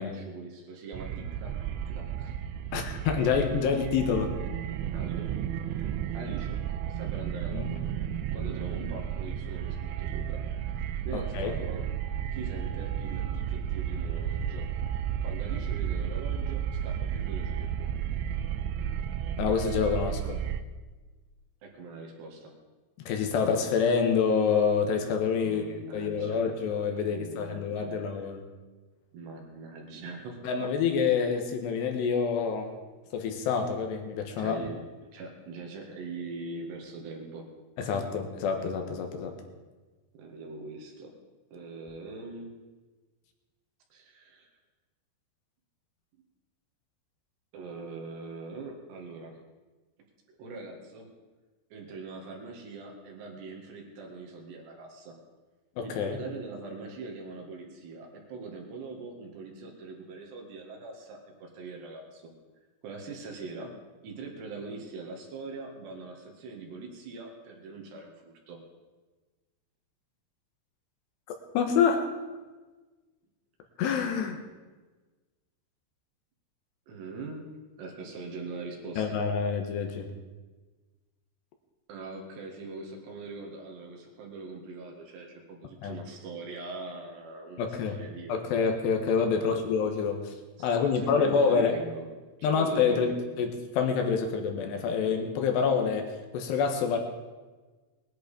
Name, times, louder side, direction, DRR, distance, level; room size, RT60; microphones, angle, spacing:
voice 1, 0.0-2.4 4.9-5.4 5.6-6.6 6.9-7.9 8.3-11.8 12.3-17.9 21.6-22.5 25.4-26.5 27.1-28.2 29.1-30.5 34.4-34.8 35.1-37.4 40.1-41.1 41.5-42.5 43.9-44.5 47.5-49.4 50.4-51.1 51.7-55.2 55.8-62.3 62.8-63.7 64.0-68.6 76.9-77.4 77.8-79.2 81.9-88.5 89.4-89.6 90.6-92.0 92.4-93.3, right 3 dB, 70° right, 1 dB, 4.1 m, -42 dB
sound 1, 0.9-20.6, right 9 dB, 90° right, 3.1 m, -33 dB
voice 2, 2.7-4.4 7.5-7.7 11.1-11.5 19.4-20.4 23.1-28.5 30.4-32.8 33.1-34.6 37.8-39.3 55.8-56.2 71.5-72.1 73.8-74.4 79.0-80.1 85.8-86.0 87.6-88.0 88.3-90.3 90.6-91.7 92.4-97.0, left 6 dB, 75° left, 5 dB, 3.3 m, -27 dB
20.0 x 10.5 x 5.1 m, 1.3 s
omnidirectional pair, 5.2 m